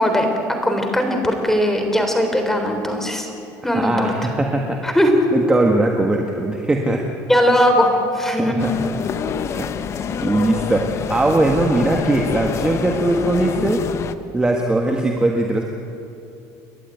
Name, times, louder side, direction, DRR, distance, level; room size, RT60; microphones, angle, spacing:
voice 1, 0.0-3.3 3.6-4.1 4.8-5.1 7.3-8.6, equal, 5° left, 4 dB, 3.6 m, -19 dB
voice 2, 3.6-4.8 5.3-7.0 8.4-8.7 9.0-9.1 9.5-9.7 10.2-13.8 14.3-15.6, right 2 dB, 10° right, 2 dB, 1.6 m, -20 dB
sound 1, 8.6-14.1, left 7 dB, 40° left, 1.0 m, -27 dB
30.0 x 11.5 x 9.4 m, 2.8 s
cardioid pair, 125°, 7 cm